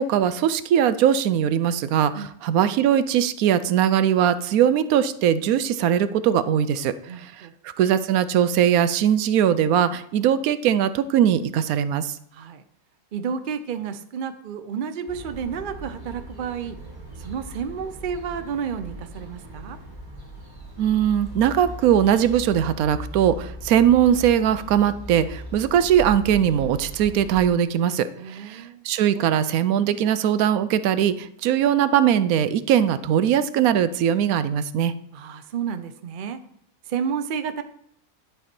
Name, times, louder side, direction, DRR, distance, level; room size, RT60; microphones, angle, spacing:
voice 1, 0.0-7.5 7.8-12.1 20.8-34.9, right 9 dB, 90° right, 13 dB, 1.0 m, -20 dB
voice 2, 7.1-7.5 12.3-12.6 13.1-16.8 17.2-19.8 28.2-28.9 35.1-36.4 36.9-37.6, right 7 dB, 60° right, 9 dB, 0.5 m, -31 dB
sound 1, 15.1-27.4, right 1 dB, 15° right, 1.5 m, -38 dB
11.0 x 4.6 x 4.3 m, 0.66 s
omnidirectional pair, 1.5 m